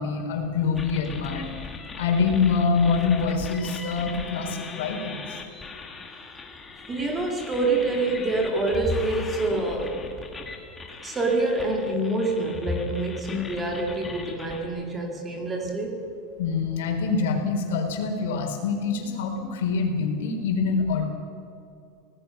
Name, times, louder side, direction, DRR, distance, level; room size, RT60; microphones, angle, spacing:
voice 1, 0.0-1.5 2.0-5.2 16.4-21.0, left 5 dB, 80° left, 3 dB, 4.3 m, -25 dB
sound 1, 0.8-14.7, left 4 dB, 10° left, 1.8 m, -40 dB
voice 2, 6.9-10.0 11.0-16.0, right 2 dB, 15° right, 2 dB, 2.3 m, -26 dB
25.0 x 18.5 x 5.9 m, 2.6 s
supercardioid pair, 180°, 0 cm